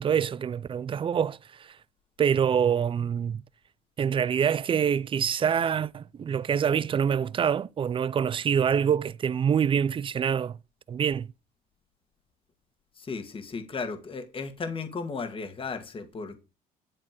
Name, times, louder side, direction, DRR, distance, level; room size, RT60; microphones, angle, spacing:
voice 1, 0.0-1.8 2.2-3.4 4.0-10.6 10.9-11.3, right 8 dB, 30° right, 0.4 m, -25 dB
voice 2, 13.0-16.4, left 4 dB, 30° left, 1.7 m, -35 dB
11.0 x 4.2 x 7.5 m
cardioid pair, 110°, 17 cm